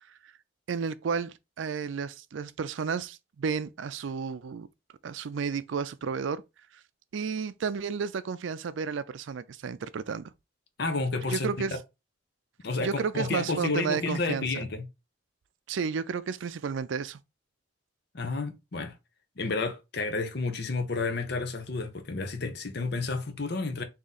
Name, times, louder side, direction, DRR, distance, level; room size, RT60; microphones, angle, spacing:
voice 1, 0.7-4.7 5.0-6.4 7.1-10.3 11.3-11.8 12.8-14.7 15.7-17.2, right 6 dB, 75° right, 0.4 m, -32 dB
voice 2, 10.8-11.5 12.6-14.9 18.1-19.0 19.4-23.8, left 3 dB, 55° left, 0.8 m, -31 dB
3.7 x 2.9 x 4.0 m
head